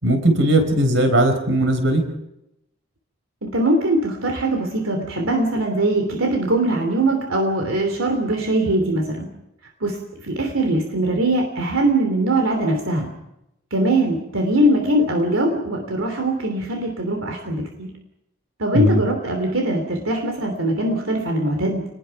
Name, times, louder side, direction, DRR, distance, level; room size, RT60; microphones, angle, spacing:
voice 1, 0.0-2.0 18.7-19.0, right 1 dB, 65° right, 7 dB, 4.4 m, -18 dB
voice 2, 3.4-9.3 9.8-10.0 10.2-13.1 13.7-17.9 18.6-21.8, right 1 dB, 80° right, 4 dB, 3.1 m, -21 dB
27.5 x 21.0 x 5.9 m, 0.84 s
head